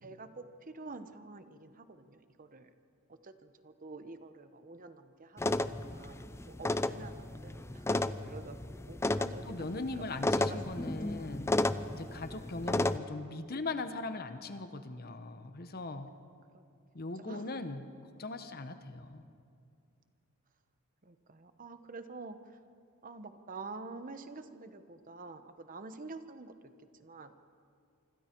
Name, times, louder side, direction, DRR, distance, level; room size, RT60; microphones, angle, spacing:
voice 1, 0.0-2.7 3.1-8.6 8.9-10.8 11.2-11.4 16.5-16.6 17.1-17.5 21.0-22.6 23.0-26.5 26.9-27.4, right 3 dB, 40° right, 9 dB, 1.0 m, -48 dB
sound 1, 5.4-13.0, left 2 dB, 10° left, 0.4 m, -33 dB
voice 2, 9.2-11.5 11.9-16.1 16.9-17.8 18.2-19.2, left 3 dB, 45° left, 9 dB, 1.1 m, -40 dB
26.0 x 25.5 x 4.6 m, 2.4 s
head